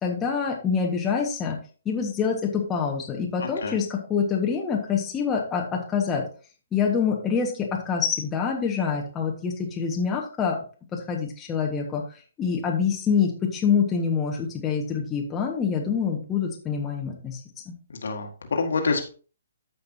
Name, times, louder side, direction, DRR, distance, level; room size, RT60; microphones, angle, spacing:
voice 1, 0.0-1.6 1.8-6.2 6.7-10.6 10.9-12.0 12.4-17.4 17.6-17.7, left 6 dB, 15° left, 0 dB, 1.5 m, -26 dB
voice 2, 3.4-3.8 17.9-19.1, left 4 dB, 60° left, 3 dB, 1.9 m, -27 dB
14.0 x 5.3 x 2.8 m, 0.37 s
figure-of-eight pair, 130°, 0 cm